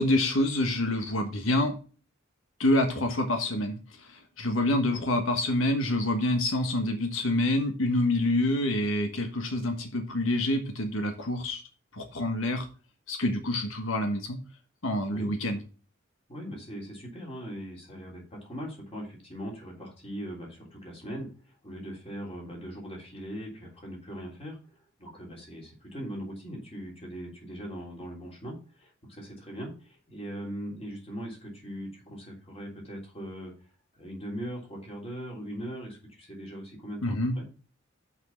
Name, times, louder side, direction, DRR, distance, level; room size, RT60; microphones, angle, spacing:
voice 1, 0.0-1.8 2.6-11.6 11.9-12.7 13.1-14.4 14.8-15.6 37.0-37.3, left 1 dB, 85° left, 5 dB, 1.3 m, -27 dB
voice 2, 4.7-5.0 15.1-15.3 16.3-21.3 21.6-24.6 25.0-33.5 33.9-37.5, equal, 30° left, -1 dB, 3.1 m, -40 dB
6.0 x 5.5 x 6.9 m, 0.37 s
head